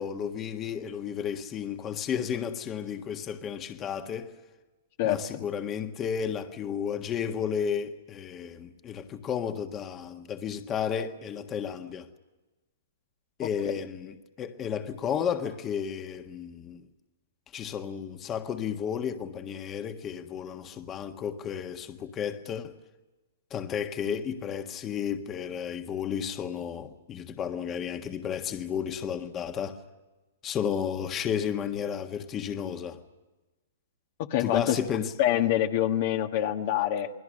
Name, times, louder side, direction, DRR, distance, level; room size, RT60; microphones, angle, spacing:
voice 1, 0.0-4.3 5.0-12.1 13.4-16.9 17.5-22.8 23.5-29.8 30.4-33.0 34.4-35.1, left 8 dB, 25° left, 1.6 m, -32 dB
voice 2, 5.0-5.4 34.3-34.7 35.2-37.1, left 12 dB, 50° left, 1.5 m, -26 dB
29.0 x 20.5 x 6.6 m
hypercardioid pair, 135°, 0 cm